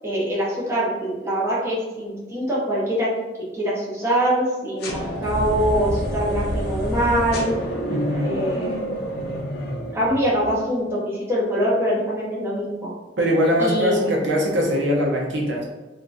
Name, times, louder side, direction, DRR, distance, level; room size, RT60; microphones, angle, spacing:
voice 1, 0.0-3.1 3.5-7.5 8.2-8.8 9.9-12.9 13.6-14.1, equal, 15° right, -7 dB, 0.7 m, -23 dB
sound 1, 4.8-10.8, equal, 55° left, 0.5 m, -28 dB
voice 2, 7.9-8.3 13.2-15.6, equal, 70° right, -2 dB, 0.6 m, -21 dB
3.6 x 2.3 x 2.5 m, 1.2 s
head